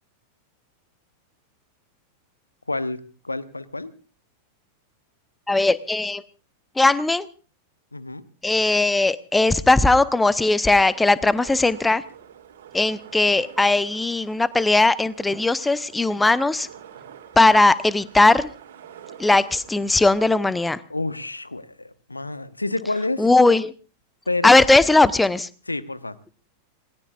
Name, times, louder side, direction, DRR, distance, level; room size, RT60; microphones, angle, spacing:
voice 1, 2.7-3.9 7.9-8.2 20.9-23.2 24.3-24.6 25.7-26.2, left 2 dB, 85° left, 14 dB, 1.0 m, -29 dB
voice 2, 5.5-6.2 6.8-7.3 8.4-12.0 12.7-16.7 17.4-18.5 19.2-20.8 23.2-23.7 24.4-25.5, left 2 dB, 10° left, 17 dB, 0.8 m, -18 dB
sound 1, 10.7-20.7, right 9 dB, 60° right, 3.0 m, -46 dB
27.0 x 19.5 x 2.5 m, 0.35 s
figure-of-eight pair, 90°, 0 cm